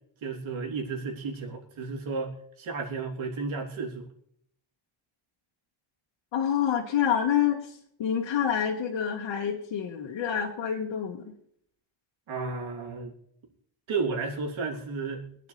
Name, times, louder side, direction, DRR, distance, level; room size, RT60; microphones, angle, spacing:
voice 1, 0.2-2.3 2.6-4.0 12.3-13.1 13.9-15.5, right 4 dB, 90° right, 0 dB, 3.3 m, -33 dB
voice 2, 6.3-11.3, left 9 dB, 85° left, -1 dB, 1.7 m, -27 dB
25.5 x 9.4 x 3.4 m, 0.70 s
cardioid pair, 145°, 46 cm